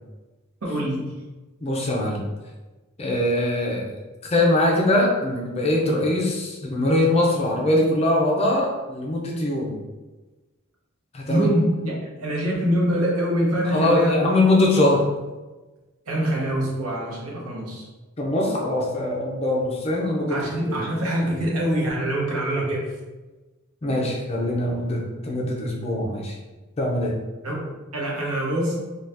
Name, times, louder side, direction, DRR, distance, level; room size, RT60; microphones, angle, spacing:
voice 1, 0.6-1.2 11.3-14.3 16.1-17.9 20.3-22.9 27.4-28.7, right 1 dB, 85° right, -3 dB, 0.8 m, -24 dB
voice 2, 1.6-2.2 3.0-3.9 4.3-9.8 11.1-11.5 13.7-15.0 18.2-20.8 23.8-26.4 26.8-27.2, left 1 dB, 30° left, -2 dB, 0.5 m, -22 dB
2.7 x 2.3 x 3.3 m, 1.2 s
head